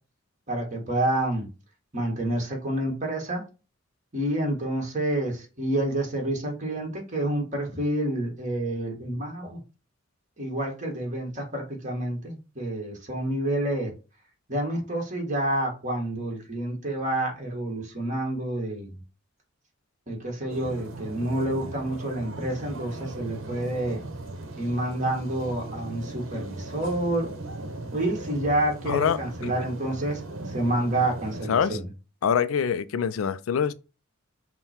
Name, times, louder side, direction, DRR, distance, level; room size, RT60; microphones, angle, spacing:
voice 1, 0.5-1.5 1.9-3.4 4.1-9.6 10.4-13.9 14.5-19.0 20.1-24.0 24.6-27.3 27.9-31.8, right 1 dB, 40° right, 1.6 m, -28 dB
sound 1, 20.5-31.5, right 2 dB, 75° right, 0.9 m, -38 dB
voice 2, 28.9-29.5 31.5-31.8 32.2-33.7, left 7 dB, 85° left, 0.4 m, -25 dB
5.5 x 2.2 x 4.3 m
head